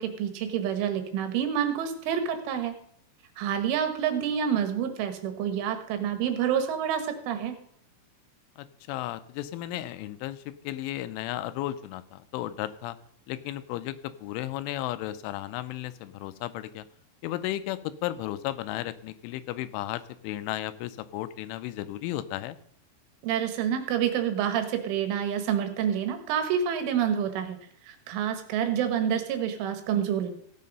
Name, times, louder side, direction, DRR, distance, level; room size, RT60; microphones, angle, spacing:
voice 1, 0.0-2.7 3.4-7.6 23.2-27.6 27.9-30.3, right 8 dB, 90° right, 7 dB, 3.9 m, -28 dB
voice 2, 8.6-13.0 13.3-16.9 17.2-22.6, left 14 dB, 90° left, 13 dB, 3.2 m, -34 dB
16.0 x 7.5 x 5.4 m, 0.64 s
omnidirectional pair, 5.4 m